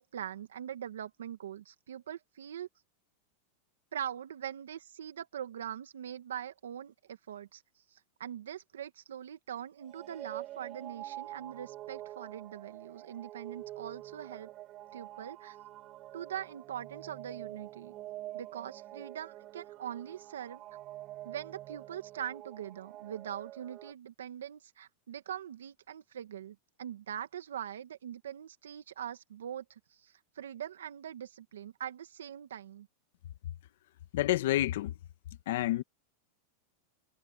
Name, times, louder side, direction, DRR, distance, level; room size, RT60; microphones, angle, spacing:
voice 1, 0.0-2.7 3.9-7.6 7.9-14.5 14.9-15.6 16.1-17.9 18.3-20.6 21.2-32.9, right 10 dB, 90° right, 2.0 m, -42 dB
sound 1, 9.8-23.9, right 15 dB, 40° right, 5.9 m, -46 dB
voice 2, 34.1-34.9 35.5-35.8, left 15 dB, 70° left, 1.9 m, -28 dB
hypercardioid pair, 115°, 0 cm